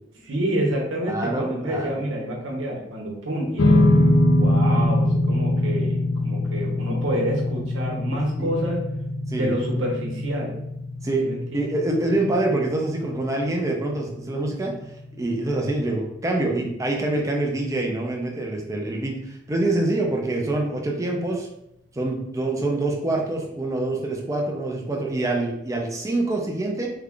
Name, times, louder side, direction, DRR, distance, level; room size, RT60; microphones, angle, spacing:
voice 1, 0.1-3.9 4.4-6.0 6.2-8.8 9.3-10.5 11.2-11.4, equal, 90° right, -1 dB, 1.0 m, -27 dB
voice 2, 1.1-1.9 8.4-8.5 9.3-9.6 11.0-11.3 11.5-14.8 15.2-21.5 21.9-26.9, right 2 dB, 15° right, 0 dB, 0.5 m, -25 dB
sound 1, 3.6-16.1, left 1 dB, 70° left, 0.4 m, -24 dB
3.3 x 2.4 x 3.6 m, 0.80 s
head